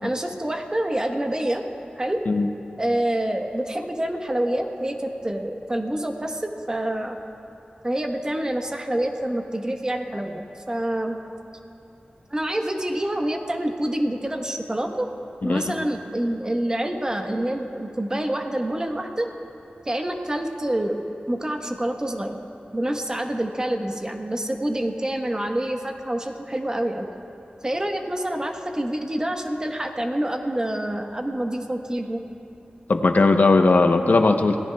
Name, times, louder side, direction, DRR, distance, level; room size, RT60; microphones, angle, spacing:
voice 1, 0.0-1.6 2.0-2.2 2.8-7.2 7.8-11.2 12.3-15.1 15.4-19.3 19.8-21.0 21.3-22.4 22.7-27.1 27.6-32.2, right 1 dB, 25° right, 3 dB, 1.2 m, -27 dB
voice 2, 15.4-15.7 32.9-34.6, left 3 dB, 65° left, 6 dB, 0.8 m, -18 dB
26.5 x 17.5 x 2.3 m, 2.8 s
wide cardioid pair, 95°, 3 cm